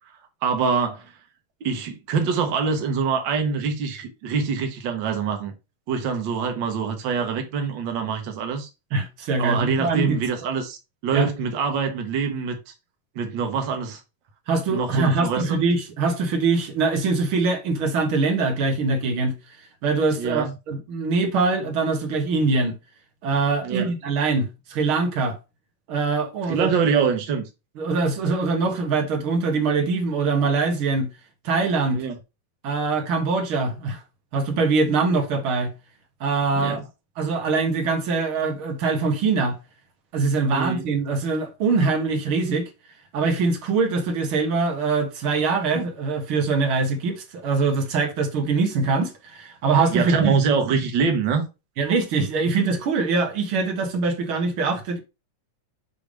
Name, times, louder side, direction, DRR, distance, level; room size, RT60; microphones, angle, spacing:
voice 1, 0.4-1.1 1.6-5.5 5.9-8.7 9.4-10.8 11.0-12.6 13.1-14.0 14.7-15.6 20.2-20.5 23.6-23.9 26.5-27.5 31.9-32.2 36.6-36.8 40.5-40.8 49.9-51.4, right 5 dB, 80° right, 1.0 m, -24 dB
voice 2, 8.9-10.2 11.1-11.3 14.5-19.4 19.8-22.8 23.2-25.4 25.9-26.7 27.8-31.1 31.4-32.0 32.6-34.0 34.3-35.7 36.2-36.8 37.2-39.6 40.1-42.7 43.1-50.3 51.8-55.0, right 4 dB, 55° right, 1.6 m, -23 dB
6.9 x 3.4 x 5.0 m
omnidirectional pair, 3.7 m